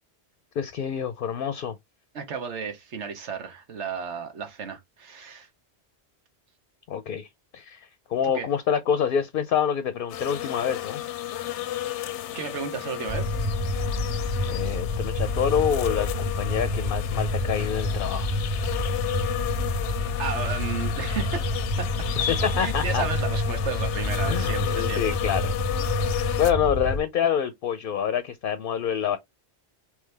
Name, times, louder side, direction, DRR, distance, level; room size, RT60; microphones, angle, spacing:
voice 1, 0.6-1.7 6.9-11.0 14.4-18.3 22.3-23.0 24.3-25.5 26.4-29.2, left 8 dB, 60° left, 0.7 m, -27 dB
voice 2, 2.1-5.5 8.2-8.5 12.3-13.4 20.2-21.4 21.8-21.9 22.6-25.2, right 6 dB, 85° right, 1.3 m, -33 dB
sound 1, 10.1-26.5, left 12 dB, 90° left, 0.9 m, -33 dB
sound 2, 13.1-27.0, left 1 dB, 30° right, 0.6 m, -28 dB
3.7 x 3.0 x 3.3 m
omnidirectional pair, 1.1 m